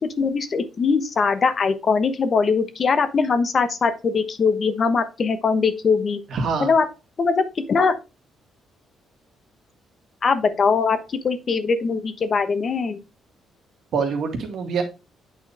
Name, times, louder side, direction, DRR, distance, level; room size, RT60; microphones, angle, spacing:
voice 1, 0.0-6.2 6.6-6.8 7.2-7.9 10.2-11.0 11.2-13.0, left 5 dB, 45° left, 10 dB, 1.0 m, -21 dB
voice 2, 6.3-6.7 13.9-14.8, right 5 dB, 65° right, 3 dB, 2.0 m, -24 dB
8.3 x 4.3 x 3.5 m, 0.28 s
cardioid pair, 90°, 0 cm